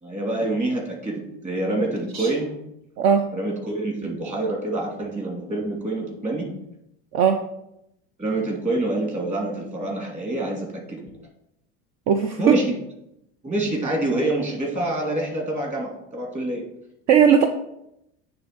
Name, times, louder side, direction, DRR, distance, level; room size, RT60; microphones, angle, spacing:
voice 1, 0.0-2.6 3.3-6.6 8.2-11.1 12.4-12.7 13.4-16.6, right 2 dB, 20° right, -1 dB, 2.6 m, -26 dB
voice 2, 3.0-3.3 7.1-7.4 12.1-12.6 17.1-17.5, right 7 dB, 55° right, 7 dB, 0.7 m, -18 dB
8.8 x 3.5 x 6.0 m, 0.81 s
supercardioid pair, 125°, 31 cm